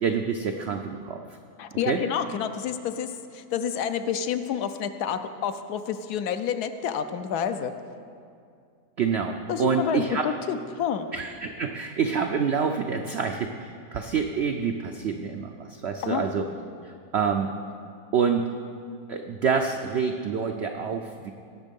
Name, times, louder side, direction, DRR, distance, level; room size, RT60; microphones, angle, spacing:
voice 1, 0.0-1.2 1.9-2.0 9.0-10.3 11.1-16.5 16.8-17.5 18.1-18.4 19.1-21.3, right 6 dB, 80° right, 5 dB, 0.5 m, -27 dB
voice 2, 1.6-7.7 9.5-11.1 16.0-16.2, left 8 dB, 75° left, 9 dB, 1.1 m, -29 dB
18.0 x 6.2 x 5.3 m, 2.4 s
omnidirectional pair, 1.8 m